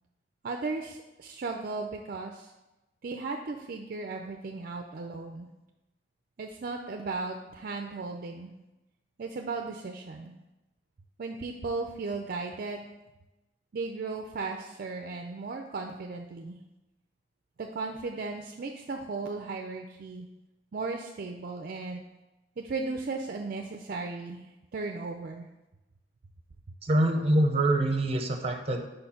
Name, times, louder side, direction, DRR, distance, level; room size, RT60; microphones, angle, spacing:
voice 1, 0.4-2.5 3.0-5.5 6.4-8.5 9.2-10.3 11.2-12.9 13.7-16.6 17.6-20.3 20.7-22.0 22.6-24.5 24.7-25.5, right 3 dB, 55° right, 4 dB, 0.4 m, -36 dB
voice 2, 26.8-28.8, right 1 dB, 35° right, 5 dB, 0.8 m, -25 dB
5.2 x 4.4 x 5.6 m, 1.0 s
head